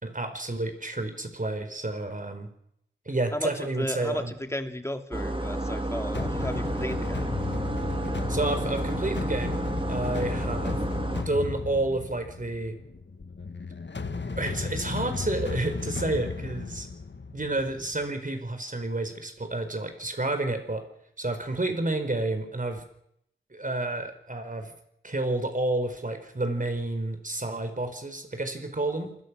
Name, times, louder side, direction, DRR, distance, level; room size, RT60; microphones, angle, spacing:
voice 1, 0.0-2.5 3.0-4.3 8.2-10.8 11.2-12.8 14.4-16.9 17.3-20.8 21.2-22.8 23.5-24.7 25.0-29.2, right 2 dB, 40° right, 7 dB, 4.7 m, -30 dB
voice 2, 3.3-7.3, left 1 dB, 15° left, 7 dB, 2.5 m, -34 dB
sound 1, 5.1-11.2, right 1 dB, 25° right, 3.3 m, -31 dB
sound 2, 6.1-18.0, left 4 dB, 65° left, 1.8 m, -34 dB
28.0 x 20.5 x 6.3 m, 0.75 s
wide cardioid pair, 65°, 20 cm